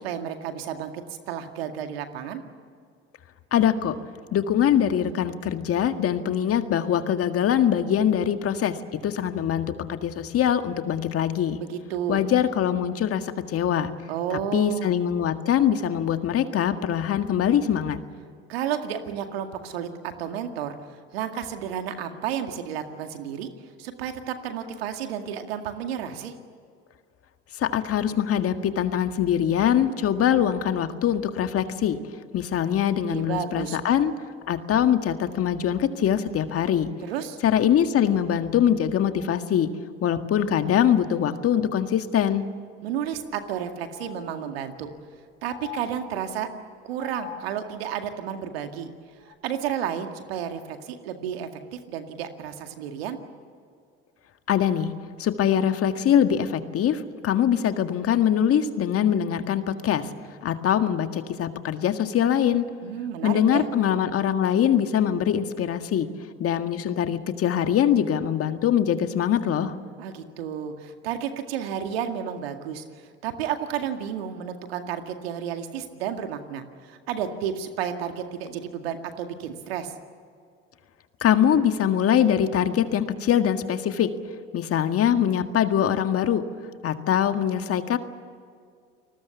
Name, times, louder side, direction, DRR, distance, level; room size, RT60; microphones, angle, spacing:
voice 1, 0.0-2.4 11.6-12.2 14.1-14.9 18.5-20.8 21.1-23.5 23.8-26.3 33.1-33.8 37.0-37.4 42.8-44.9 45.4-46.5 46.8-48.9 49.4-53.2 62.8-63.7 70.0-72.8 73.2-79.9, right 9 dB, 85° right, 6 dB, 2.1 m, -32 dB
voice 2, 3.5-4.0 4.3-8.8 9.0-11.6 12.1-13.9 14.3-18.0 27.6-32.0 32.3-34.1 34.5-36.9 37.4-39.7 40.0-42.5 54.5-54.9 55.2-60.1 60.4-62.7 63.2-66.1 66.4-69.7 81.2-84.1 84.5-86.4 86.8-88.0, left 9 dB, 50° left, 8 dB, 1.8 m, -23 dB
sound 1, 42.9-43.0 43.3-43.4 43.9-44.8 45.5-46.5 47.0-47.9 49.2-49.3, left 9 dB, 90° left, 2.4 m, -43 dB
29.5 x 20.0 x 7.1 m, 2.2 s
hypercardioid pair, 70°, 30 cm